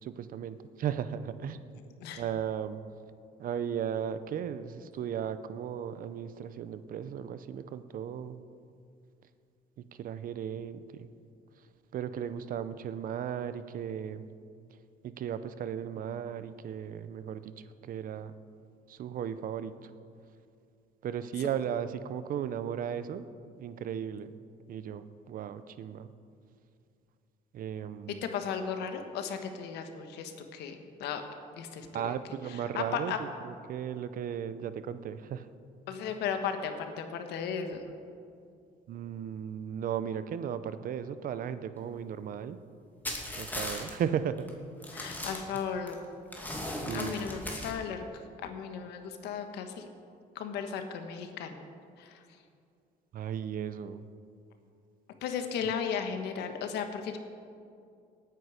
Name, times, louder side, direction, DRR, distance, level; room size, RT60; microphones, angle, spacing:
voice 1, 0.0-1.6 2.1-2.8 3.4-8.4 9.8-11.1 11.6-11.7 11.9-14.3 14.7-18.3 18.9-19.9 21.0-23.3 23.6-24.3 24.7-26.1 27.5-28.2 31.9-35.5 38.9-42.6 43.4-44.5 46.9-47.2 53.1-54.0, right 8 dB, 55° right, 12 dB, 0.7 m, -36 dB
voice 2, 28.2-31.2 31.5-32.1 32.5-33.2 35.9-37.8 44.9-46.0 46.6-49.9 50.3-51.6 52.0-52.2 55.2-57.2, left 7 dB, 80° left, 7 dB, 1.4 m, -36 dB
sound 1, 43.0-43.9 44.4-44.5 44.8-45.9 46.3-47.7, left 1 dB, 10° left, 2.4 m, -37 dB
18.0 x 9.4 x 5.1 m, 2.4 s
cardioid pair, 110°, 17 cm